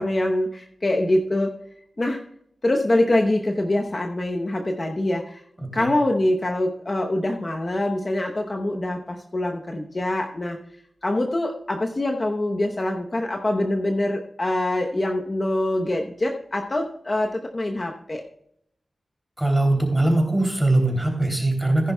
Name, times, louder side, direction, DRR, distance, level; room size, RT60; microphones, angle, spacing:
voice 1, 0.0-1.5 2.0-2.2 2.6-5.4 5.7-10.6 11.0-18.2, left 1 dB, 35° left, 2 dB, 0.9 m, -24 dB
voice 2, 5.6-5.9 19.4-21.9, right 2 dB, 5° right, 2 dB, 3.0 m, -21 dB
15.0 x 10.5 x 2.3 m, 0.72 s
wide cardioid pair, 105°, 0 cm